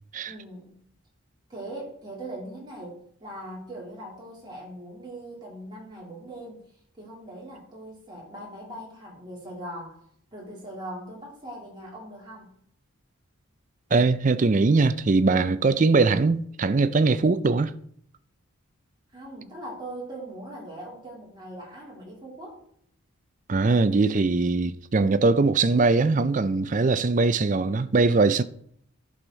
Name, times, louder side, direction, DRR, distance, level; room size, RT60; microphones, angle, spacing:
voice 1, 0.2-0.9 1.5-10.0 10.3-12.5 19.1-22.7, right 1 dB, 20° right, 3.3 m, -40 dB
voice 2, 13.9-17.7 23.5-28.4, right 3 dB, 35° right, 0.4 m, -21 dB
11.0 x 6.4 x 4.0 m
head